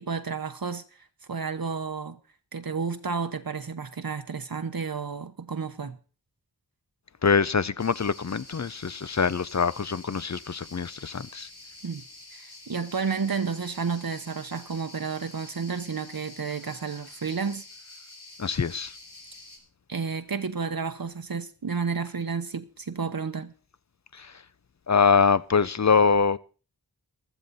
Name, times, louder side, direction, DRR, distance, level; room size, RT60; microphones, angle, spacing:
voice 1, 0.0-2.2 2.5-6.0 11.8-12.0 12.3-17.6 19.9-23.5, right 5 dB, 65° right, 0.9 m, -31 dB
voice 2, 7.2-11.5 18.4-18.9 24.1-24.3 24.9-26.4, left 5 dB, 45° left, 0.6 m, -24 dB
sound 1, 7.8-19.6, left 2 dB, 80° left, 3.9 m, -48 dB
15.5 x 12.5 x 4.1 m
wide cardioid pair, 55°, 38 cm